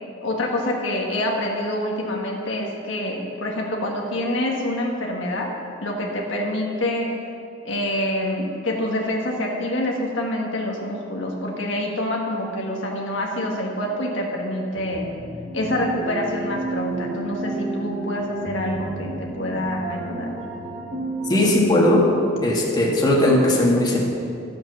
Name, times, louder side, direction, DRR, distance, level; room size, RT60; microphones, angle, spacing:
voice 1, 0.2-5.5 5.8-7.2 7.7-15.1 15.5-20.4, left 1 dB, 75° left, -1 dB, 1.7 m, -26 dB
sound 1, 14.7-21.6, right 2 dB, 35° right, 1.3 m, -31 dB
voice 2, 21.3-22.0 22.4-24.0, left 1 dB, 20° left, -4 dB, 1.9 m, -18 dB
12.5 x 7.9 x 6.1 m, 2.4 s
head